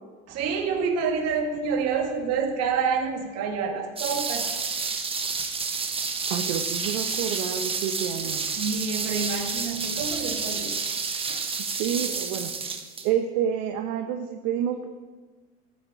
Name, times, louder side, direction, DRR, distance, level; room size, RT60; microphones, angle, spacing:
voice 1, 0.3-4.5 8.2-10.8 11.3-11.4, right 5 dB, 45° right, 3 dB, 2.1 m, -28 dB
sound 1, 4.0-13.1, right 5 dB, 15° right, 1.1 m, -30 dB
voice 2, 6.3-8.4 11.8-12.5 13.0-14.9, right 9 dB, 65° right, 5 dB, 1.0 m, -28 dB
13.5 x 6.9 x 5.0 m, 1.3 s
supercardioid pair, 115°, 34 cm